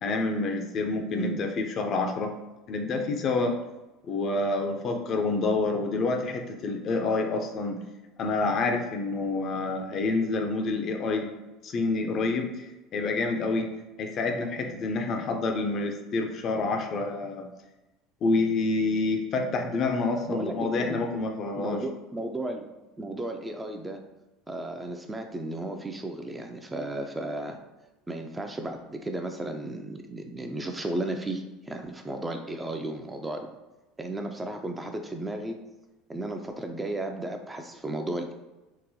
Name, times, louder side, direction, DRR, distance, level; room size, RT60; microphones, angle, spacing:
voice 1, 0.0-2.3 2.7-3.6 4.0-7.8 8.2-11.3 11.6-12.7 12.9-13.7 14.0-17.5 18.2-21.8, left 3 dB, 45° left, 4 dB, 0.5 m, -28 dB
voice 2, 20.3-21.0 21.6-22.7 23.0-24.0 24.5-27.6 28.1-33.5 34.0-35.6 36.1-38.3, right 1 dB, 15° right, 4 dB, 0.4 m, -34 dB
3.8 x 2.1 x 2.7 m, 1.0 s
hypercardioid pair, 75°, 0 cm